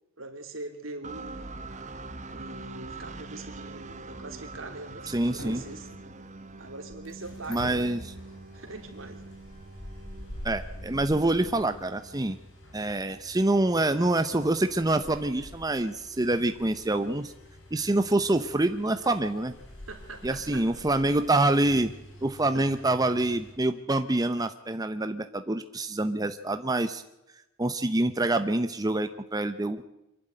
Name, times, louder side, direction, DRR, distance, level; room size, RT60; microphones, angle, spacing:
voice 1, 0.2-1.5 2.3-5.9 6.6-8.0 8.5-9.2 19.9-20.7 22.5-22.6, right 2 dB, 75° right, 5 dB, 3.2 m, -42 dB
sound 1, 1.0-12.8, right 3 dB, 35° right, 1.4 m, -44 dB
sound 2, 5.1-23.5, equal, 65° left, 5.4 m, -46 dB
voice 2, 5.1-5.6 7.5-8.0 10.4-12.4 12.7-17.3 17.7-19.5 20.2-21.9 22.2-27.0 27.6-29.8, right 2 dB, 20° right, 9 dB, 0.7 m, -26 dB
24.5 x 11.5 x 9.1 m, 0.91 s
head